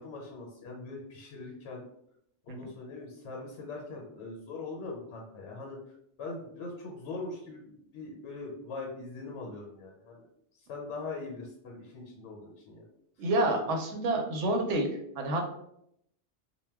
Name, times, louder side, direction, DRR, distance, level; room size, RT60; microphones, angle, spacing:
voice 1, 0.0-1.8 2.4-5.8 6.2-10.2 10.7-12.8, left 3 dB, 75° left, -1 dB, 0.9 m, -41 dB
voice 2, 13.2-15.5, right 1 dB, 90° right, 3 dB, 0.9 m, -29 dB
2.2 x 2.1 x 3.3 m, 0.75 s
omnidirectional pair, 1.2 m